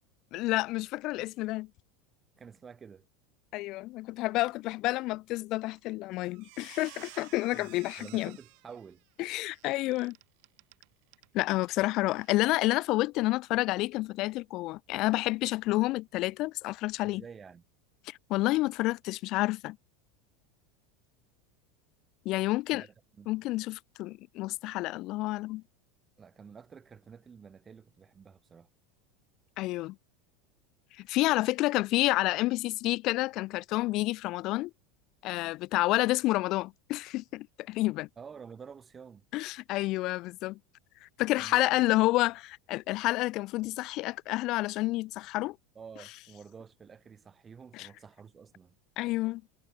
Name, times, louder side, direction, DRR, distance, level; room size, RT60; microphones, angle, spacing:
voice 1, 0.3-1.7 3.5-8.3 9.2-10.2 11.3-17.2 18.1-19.8 22.2-22.8 23.3-25.6 29.6-30.0 31.0-34.7 35.2-38.1 39.3-40.6 41.0-42.4 42.7-45.6 47.7-47.9 49.0-49.4, left 19 dB, 55° left, 0.5 m, -29 dB
voice 2, 2.4-3.1 7.5-7.7 8.0-9.0 17.0-17.6 22.7-22.9 23.2-23.4 26.2-28.7 38.2-39.2 41.4-42.1 45.7-48.8, right 6 dB, 25° right, 6.9 m, -49 dB
Squeak, 5.8-6.0 6.3-11.3 11.6-11.8 12.2-12.3, right 36 dB, 65° right, 5.2 m, -53 dB
supercardioid pair, 110°, 0 cm